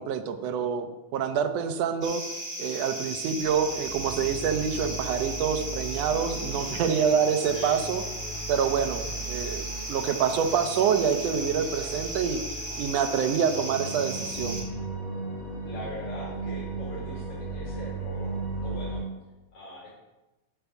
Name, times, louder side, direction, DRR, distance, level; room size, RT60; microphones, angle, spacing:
voice 1, 0.0-2.2 2.6-8.0 8.5-12.4 12.8-14.6, right 7 dB, 70° right, 7 dB, 1.7 m, -27 dB
sound 1, 2.0-14.6, right 1 dB, 30° right, 3.8 m, -36 dB
sound 2, 3.4-19.0, right 3 dB, 40° left, 3.7 m, -37 dB
voice 2, 6.3-6.8 7.5-7.8 11.6-11.9 15.6-19.0 19.5-19.9, left 1 dB, 70° left, -7 dB, 6.2 m, -41 dB
13.5 x 4.7 x 7.1 m, 1.1 s
omnidirectional pair, 3.6 m